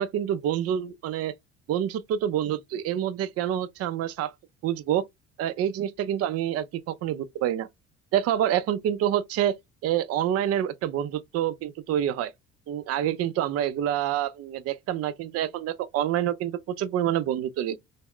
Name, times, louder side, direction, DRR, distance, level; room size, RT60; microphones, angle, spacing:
voice 1, 0.0-1.3 1.7-4.3 4.6-5.0 5.4-7.7 8.1-9.5 9.8-12.3 12.7-17.8, right 11 dB, 50° right, 0.4 m, -27 dB
2.2 x 2.1 x 3.4 m
hypercardioid pair, 60°, 33 cm